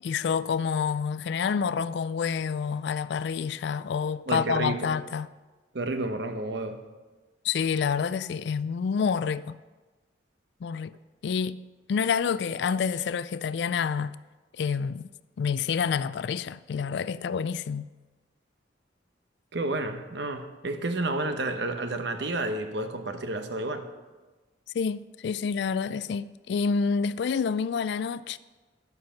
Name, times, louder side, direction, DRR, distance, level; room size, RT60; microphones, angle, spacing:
voice 1, 0.0-5.3 7.4-9.6 10.6-10.9 11.2-11.6 11.9-14.2 14.6-15.1 15.4-17.9 24.7-28.4, left 6 dB, 65° left, 0.3 m, -28 dB
voice 2, 4.3-4.9 5.7-6.8 19.5-23.9, right 2 dB, 65° right, 0.9 m, -30 dB
11.0 x 7.7 x 5.7 m
head